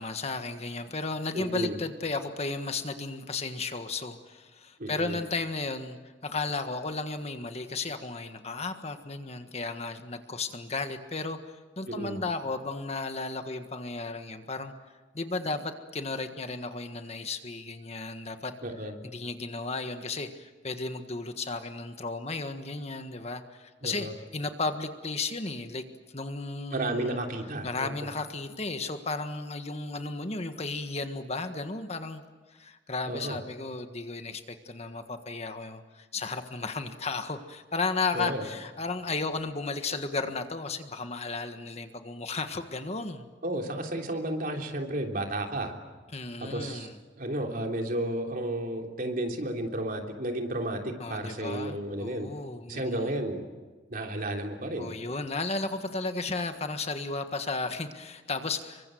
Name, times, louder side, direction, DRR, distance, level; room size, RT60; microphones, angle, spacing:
voice 1, 0.0-11.4 11.8-14.7 15.1-18.6 19.1-25.8 26.1-27.2 27.6-32.2 32.5-43.3 46.1-46.9 51.0-53.1 54.8-58.9, left 3 dB, 35° left, 7 dB, 1.6 m, -34 dB
voice 2, 1.3-1.8 4.8-5.2 11.9-12.2 18.6-18.9 23.8-24.1 26.7-28.1 33.1-33.4 38.1-38.5 43.4-45.7 46.4-46.9 47.2-52.3 52.7-53.4 53.9-54.9, right 1 dB, 50° right, 2 dB, 3.4 m, -32 dB
27.5 x 24.0 x 7.8 m, 1.3 s
head